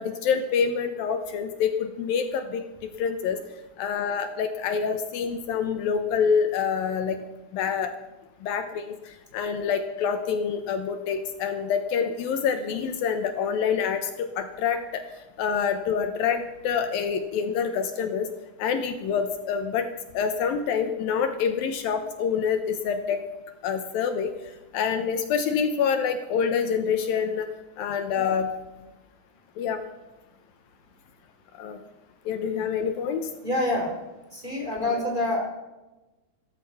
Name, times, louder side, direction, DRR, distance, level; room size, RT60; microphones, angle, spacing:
voice 1, 0.0-2.6 3.0-3.4 3.8-7.2 7.5-7.9 8.4-14.1 14.4-15.0 15.4-18.3 18.6-19.9 20.1-23.2 23.6-24.3 24.7-27.5 27.8-28.6 29.6-29.8 31.6-31.8 32.3-33.3 34.9-35.0, left 6 dB, 75° left, 7 dB, 2.7 m, -26 dB
voice 2, 33.4-34.0 34.3-35.4, left 1 dB, 15° right, -1 dB, 3.3 m, -26 dB
15.0 x 14.0 x 5.8 m, 1.1 s
omnidirectional pair, 4.4 m